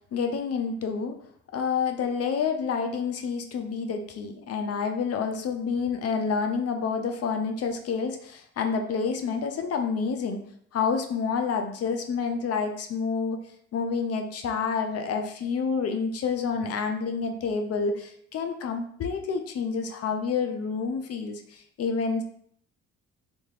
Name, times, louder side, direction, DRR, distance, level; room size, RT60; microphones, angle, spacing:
voice 1, 0.1-1.2 1.5-10.5 10.7-13.4 13.7-22.2, left 5 dB, 55° left, 6 dB, 0.5 m, -28 dB
3.3 x 2.4 x 3.3 m, 0.63 s
cardioid pair, 90°, 30 cm